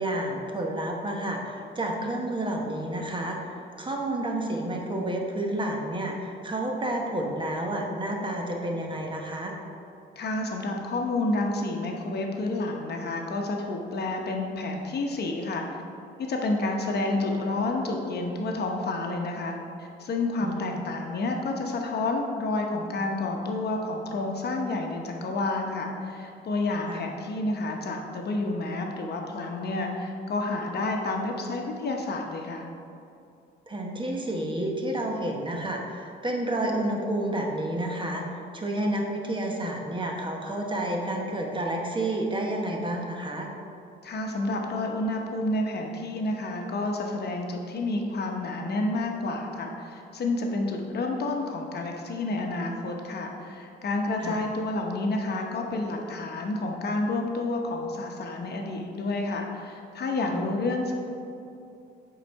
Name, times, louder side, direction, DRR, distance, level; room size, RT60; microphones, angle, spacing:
voice 1, 0.0-9.5 20.4-20.8 26.9-27.0 33.7-38.3 38.5-43.5 54.2-54.4 60.3-60.5, right 1 dB, 25° right, 0 dB, 1.0 m, -30 dB
voice 2, 10.2-15.7 16.2-32.7 44.0-60.9, left 2 dB, 55° left, 2 dB, 0.9 m, -29 dB
8.0 x 3.9 x 4.6 m, 2.6 s
cardioid pair, 90°, 20 cm